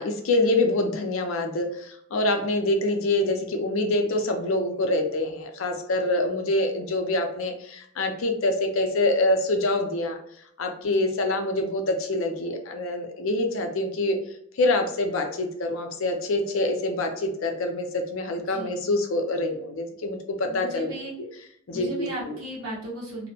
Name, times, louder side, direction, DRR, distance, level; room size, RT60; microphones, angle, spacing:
voice 1, 0.0-10.2 10.6-14.2 14.6-20.9 21.7-22.4, left 2 dB, 65° left, 5 dB, 0.5 m, -25 dB
voice 2, 18.5-18.8 20.5-21.1 21.7-23.3, equal, 80° right, -6 dB, 1.1 m, -36 dB
2.6 x 2.1 x 2.7 m, 0.70 s
head